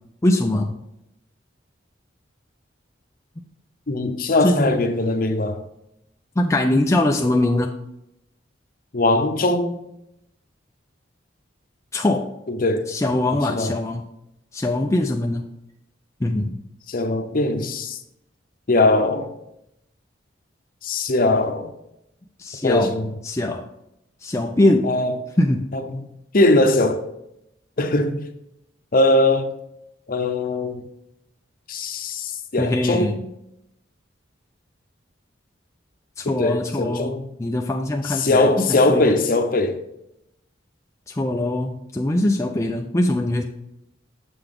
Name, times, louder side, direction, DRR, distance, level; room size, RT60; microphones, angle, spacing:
voice 1, 0.2-0.8 4.4-4.8 6.4-7.7 11.9-12.3 12.9-14.1 14.5-15.5 16.2-16.6 22.4-23.0 23.2-23.7 24.2-24.9 25.4-25.7 32.6-33.2 36.2-39.2 41.1-43.4, left 1 dB, 15° left, 0.4 m, -22 dB
voice 2, 3.9-5.6 8.9-9.8 12.5-12.9 13.5-13.7 16.9-18.0 18.7-19.3 20.8-21.7 22.6-23.1 24.8-25.1 25.7-26.0 26.3-27.0 27.8-28.2 28.9-29.5 30.1-30.8 31.7-33.2 36.2-37.2 38.1-39.8, left 2 dB, 50° left, 0.7 m, -20 dB
7.0 x 5.8 x 3.5 m
head